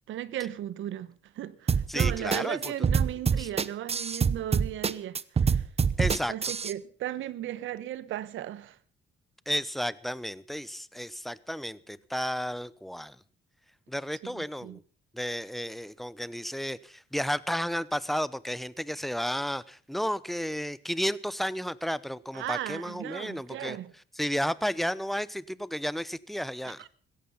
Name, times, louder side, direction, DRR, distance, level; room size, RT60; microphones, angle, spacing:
voice 1, 0.1-5.6 6.3-8.8 14.2-14.8 22.3-23.9 26.6-26.9, right 12 dB, 80° right, 1.1 m, -36 dB
sound 1, 1.7-6.7, right 6 dB, 30° right, 0.9 m, -25 dB
voice 2, 1.9-2.7 3.4-3.5 6.0-6.3 9.5-13.2 13.9-14.8 15.1-23.8 24.2-26.8, equal, ahead, 0.8 m, -32 dB
16.5 x 14.5 x 5.5 m
cardioid pair, 90°, 20 cm